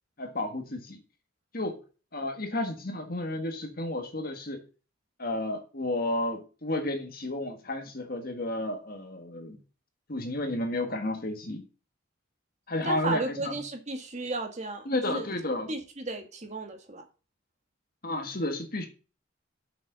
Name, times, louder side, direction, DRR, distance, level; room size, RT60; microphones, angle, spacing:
voice 1, 0.2-1.0 1.5-1.8 2.1-4.6 5.2-9.6 10.1-11.6 12.7-13.6 14.8-15.7 18.0-18.9, left 1 dB, 45° left, 5 dB, 1.7 m, -32 dB
voice 2, 12.8-15.3 15.7-17.0, right 2 dB, 35° right, 4 dB, 1.9 m, -34 dB
7.1 x 6.6 x 5.5 m, 0.34 s
head